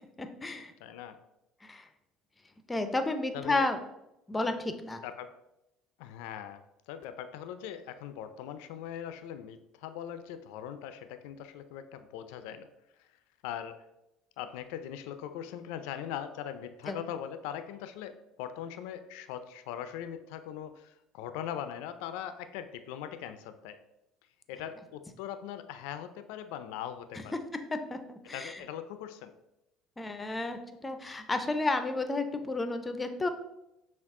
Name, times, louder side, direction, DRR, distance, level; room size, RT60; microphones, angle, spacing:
voice 1, 0.2-0.7 1.6-1.9 2.7-3.8 4.3-5.0 16.9-17.0 27.3-27.4 27.7-28.6 30.0-33.3, left 2 dB, 15° left, 8 dB, 0.5 m, -32 dB
voice 2, 0.8-1.2 3.3-3.7 5.0-5.3 6.0-12.7 13.0-13.1 13.4-13.8 14.4-23.8 24.5-27.3 28.3-29.3, left 10 dB, 85° left, 10 dB, 0.3 m, -41 dB
5.8 x 2.3 x 3.6 m, 0.89 s
supercardioid pair, 105°, 0 cm